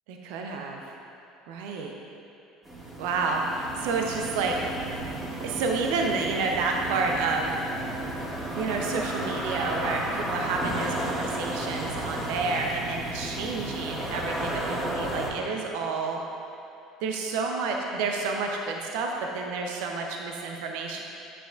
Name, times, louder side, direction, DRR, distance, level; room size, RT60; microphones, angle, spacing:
voice 1, 0.1-0.9 1.5-1.9 3.0-4.8 5.4-7.7 8.5-16.2 17.0-21.0, right 4 dB, 65° right, 1 dB, 0.7 m, -30 dB
sound 1, 2.6-15.3, right 1 dB, 15° right, 2.0 m, -33 dB
10.0 x 9.0 x 2.5 m, 2.7 s
figure-of-eight pair, 65°, 0 cm